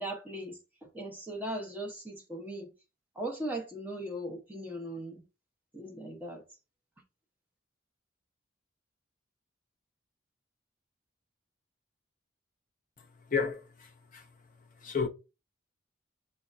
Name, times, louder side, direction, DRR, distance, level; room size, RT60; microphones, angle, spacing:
voice 1, 0.0-2.7 3.2-5.2 5.7-6.4, right 1 dB, 10° right, 0.8 m, -39 dB
voice 2, 13.3-14.2 14.8-15.1, left 5 dB, 40° left, 0.5 m, -32 dB
6.6 x 2.2 x 2.4 m
head